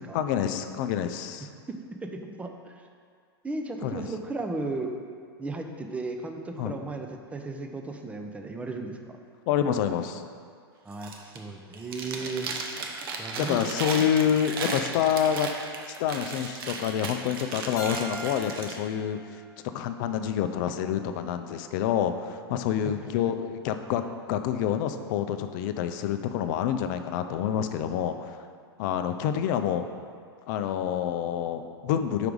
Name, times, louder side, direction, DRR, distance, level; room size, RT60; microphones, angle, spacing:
voice 1, 0.1-1.5 3.8-4.1 6.6-6.7 9.5-10.2 13.4-19.2 19.7-28.4 28.8-29.8 30.5-32.3, left 9 dB, 50° left, 9 dB, 0.4 m, -27 dB
voice 2, 1.7-2.8 3.4-4.9 5.4-9.0 10.8-12.5 13.2-14.1 22.8-23.1, right 3 dB, 10° right, 4 dB, 0.5 m, -35 dB
Chewing mastication, 10.9-11.4 11.7-18.8, right 4 dB, 60° right, 0.8 m, -35 dB
Keyboard (musical), 17.8-20.6, right 1 dB, 20° left, 1.0 m, -42 dB
4.9 x 4.6 x 5.1 m, 2.1 s
hypercardioid pair, 100°, 13 cm